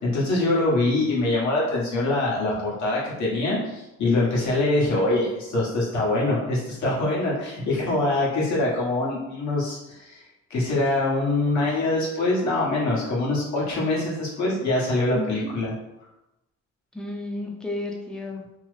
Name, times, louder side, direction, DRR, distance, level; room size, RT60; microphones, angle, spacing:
voice 1, 0.0-10.2 10.5-15.7, left 2 dB, 65° left, -6 dB, 1.3 m, -24 dB
voice 2, 15.1-15.5 16.9-18.6, left 2 dB, 5° left, 0 dB, 0.5 m, -32 dB
2.9 x 2.0 x 3.1 m, 0.96 s
cardioid pair, 90°, 30 cm